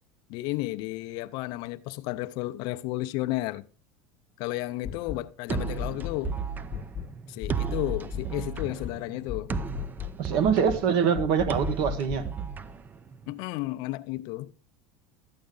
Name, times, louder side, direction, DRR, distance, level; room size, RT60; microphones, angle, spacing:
voice 1, 0.3-3.6 4.4-6.3 7.3-9.5 13.3-14.5, left 18 dB, 60° left, 0.6 m, -32 dB
sound 1, 4.8-5.2 5.5-6.4 6.7-7.1 7.4-8.3 8.6-9.0 9.3-10.2 10.5-10.9 11.2-12.3, left 8 dB, 30° left, 1.0 m, -36 dB
sound 2, 5.5-13.4, right 7 dB, 20° right, 0.6 m, -35 dB
voice 2, 10.2-12.2, right 7 dB, 60° right, 1.3 m, -24 dB
12.5 x 8.5 x 3.9 m
supercardioid pair, 115°, 8 cm